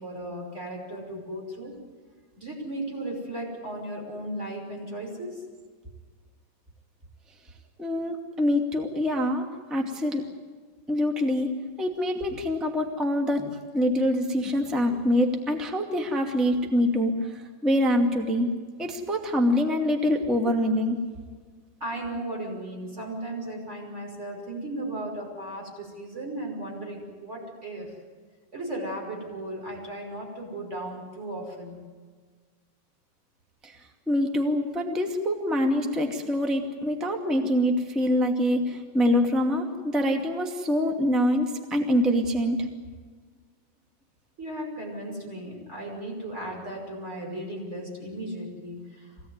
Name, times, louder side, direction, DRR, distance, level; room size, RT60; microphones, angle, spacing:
voice 1, 0.0-1.8 2.4-5.4 21.8-27.9 28.5-31.8 44.4-49.1, right 1 dB, 15° right, 0 dB, 5.6 m, -36 dB
voice 2, 7.8-10.2 10.9-11.5 11.8-18.5 18.8-21.0 33.6-33.7 34.1-42.7, left 1 dB, ahead, 3 dB, 1.0 m, -25 dB
24.5 x 18.0 x 9.6 m, 1.5 s
omnidirectional pair, 4.5 m